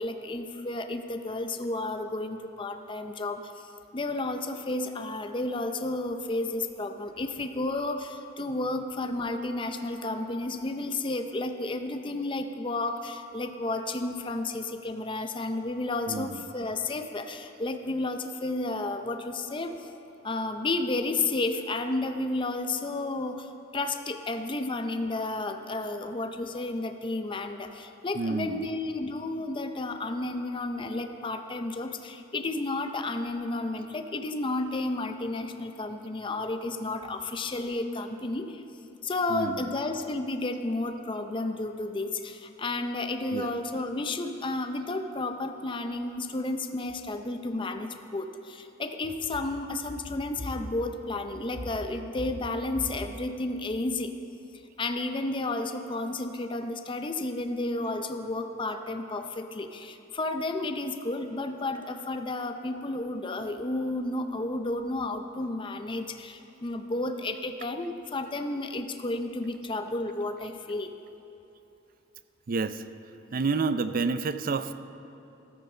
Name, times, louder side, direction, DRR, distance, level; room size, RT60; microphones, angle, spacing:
voice 1, 0.0-19.9 20.2-38.6 39.0-54.1 54.8-70.9, left 2 dB, 25° left, 7 dB, 0.6 m, -32 dB
voice 2, 16.1-16.5 28.1-28.7 39.3-39.7 43.3-43.5 72.5-72.9 73.3-74.7, right 4 dB, 45° right, 12 dB, 0.4 m, -29 dB
14.0 x 12.5 x 4.4 m, 3.0 s
head